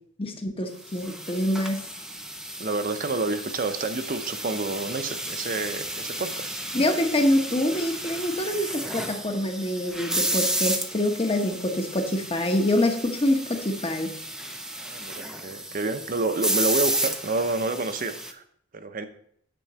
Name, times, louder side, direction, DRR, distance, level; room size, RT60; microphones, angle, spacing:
voice 1, 0.2-1.8 6.7-14.1, left 1 dB, 25° left, 4 dB, 1.0 m, -25 dB
sound 1, 0.9-18.3, right 1 dB, 5° right, 0.5 m, -32 dB
voice 2, 2.6-6.6 14.8-18.4 18.7-19.1, right 3 dB, 40° right, 9 dB, 0.7 m, -29 dB
9.1 x 3.8 x 6.8 m, 0.69 s
head